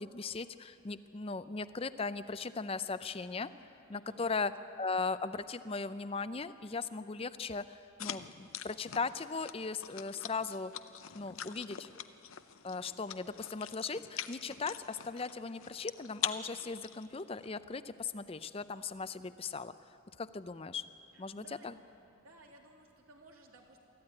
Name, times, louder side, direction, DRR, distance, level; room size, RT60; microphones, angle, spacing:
voice 1, 0.0-3.5 3.9-4.5 4.8-10.7 11.1-11.9 12.6-19.7 20.2-20.9 21.2-21.8, left 4 dB, 25° left, 13 dB, 0.5 m, -38 dB
voice 2, 3.9-4.3 21.1-21.7 22.0-23.8, right 2 dB, 85° right, 0 dB, 3.0 m, -58 dB
sound 1, 8.0-17.5, left 10 dB, 75° left, 0.7 m, -44 dB
23.0 x 14.5 x 9.8 m, 2.7 s
head